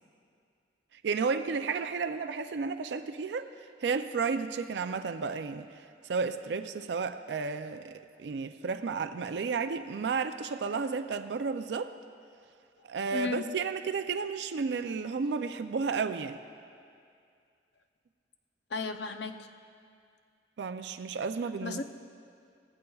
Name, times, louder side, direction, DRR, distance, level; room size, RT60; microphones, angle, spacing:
voice 1, 1.0-3.5 3.8-11.9 12.8-16.4 20.6-21.8, right 5 dB, 75° right, 9 dB, 0.4 m, -32 dB
voice 2, 13.1-13.6 18.7-19.5 21.6-21.8, left 4 dB, 70° left, 8 dB, 0.6 m, -34 dB
18.0 x 15.0 x 2.3 m, 2.4 s
head